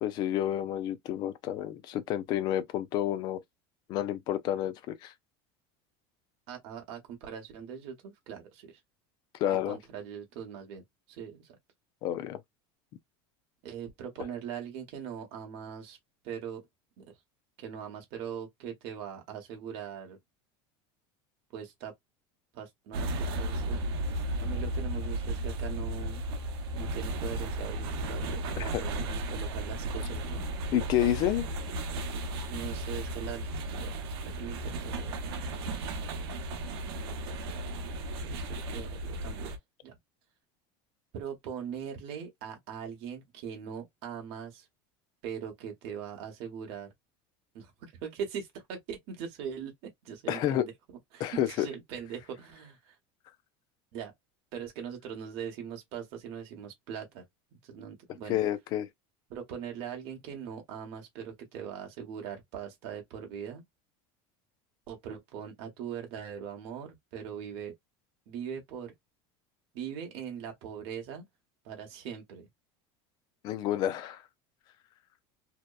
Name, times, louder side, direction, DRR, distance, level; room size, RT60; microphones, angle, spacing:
voice 1, 0.0-3.4 3.9-5.1 9.4-9.8 12.0-12.4 28.7-28.8 30.7-31.5 50.3-50.6 51.2-51.7 58.3-58.9 73.4-74.2, left 12 dB, 35° left, 0.4 m, -29 dB
voice 2, 6.5-8.8 9.5-10.8 11.1-11.6 13.6-16.0 16.2-16.6 17.0-17.1 17.6-20.2 21.5-21.9 22.5-26.2 26.7-30.4 32.5-34.0 34.2-35.1 38.3-38.4 38.7-39.6 39.8-40.0 41.1-44.7 45.2-46.9 47.5-50.7 51.1-53.0 53.9-54.1 54.5-57.2 57.5-58.4 59.3-63.6 64.9-67.7 68.3-68.9 69.7-71.2 71.6-72.5, right 8 dB, 50° right, 1.0 m, -41 dB
sound 1, 22.9-39.6, right 1 dB, 85° right, 0.7 m, -34 dB
2.8 x 2.1 x 2.2 m
cardioid pair, 175°, 13 cm